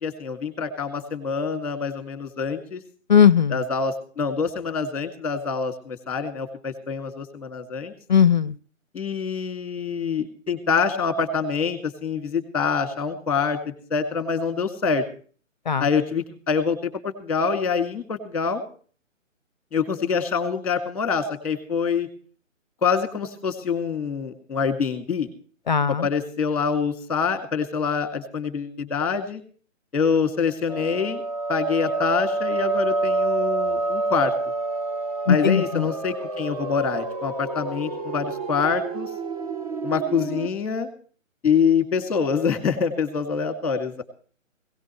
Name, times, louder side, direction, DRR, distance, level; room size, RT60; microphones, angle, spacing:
voice 1, 0.0-2.8 3.5-7.9 8.9-13.6 13.9-15.0 15.8-18.6 19.7-22.1 22.8-25.3 26.0-29.4 29.9-31.2 31.5-34.3 35.3-39.1 39.8-40.9 41.4-44.0, left 5 dB, 5° left, 7 dB, 2.3 m, -25 dB
voice 2, 3.1-3.5 8.1-8.5 15.7-15.8 25.7-26.0 35.3-35.6, left 8 dB, 35° left, 22 dB, 0.6 m, -17 dB
sound 1, 30.7-40.5, right 3 dB, 30° right, 0.6 m, -28 dB
18.0 x 17.5 x 3.2 m, 0.43 s
hypercardioid pair, 160°, 39 cm